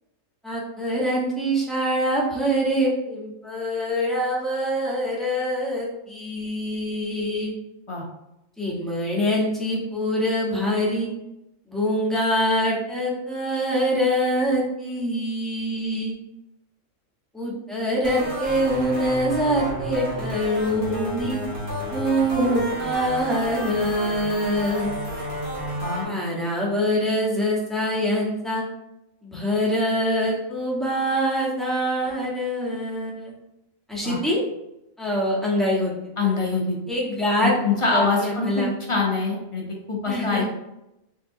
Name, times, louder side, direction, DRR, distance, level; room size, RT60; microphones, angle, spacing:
voice 1, 0.4-7.5 8.6-11.1 11.7-16.1 17.3-21.4 21.9-24.9 26.0-28.6 29.2-33.3 33.9-34.4 35.0-35.9 36.2-36.3 36.9-37.5 37.9-38.7 40.1-40.4, equal, ahead, -5 dB, 0.9 m, -24 dB
sound 1, 18.0-26.0, equal, 40° right, 1.7 m, -31 dB
voice 2, 36.2-36.8 37.4-40.5, left 4 dB, 35° left, -2 dB, 0.5 m, -24 dB
3.7 x 3.6 x 2.7 m, 0.88 s
omnidirectional pair, 1.4 m